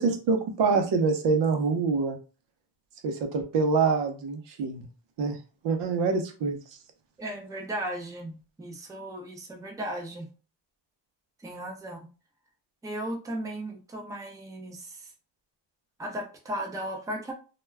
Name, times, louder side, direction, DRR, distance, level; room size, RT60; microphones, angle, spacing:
voice 1, 0.0-2.2 3.0-4.9 5.2-5.4 5.6-6.6, right 4 dB, 75° right, 5 dB, 0.7 m, -25 dB
voice 2, 7.2-10.3 11.4-12.1 12.8-15.1 16.0-17.3, right 1 dB, 10° right, 2 dB, 0.4 m, -36 dB
2.2 x 2.2 x 3.3 m, 0.35 s
wide cardioid pair, 150°, 43 cm